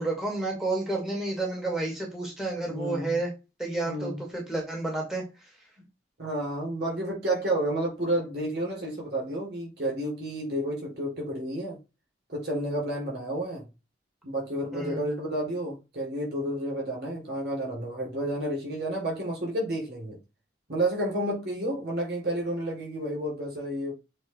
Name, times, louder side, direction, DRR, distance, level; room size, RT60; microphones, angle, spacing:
voice 1, 0.0-3.3 3.6-5.2 14.7-15.1, right 2 dB, 5° right, 2.0 m, -30 dB
voice 2, 2.6-3.2 3.8-4.2 6.2-11.8 12.3-13.7 14.2-20.2 20.7-23.9, right 1 dB, 60° right, 3.6 m, -31 dB
7.9 x 2.8 x 4.6 m
head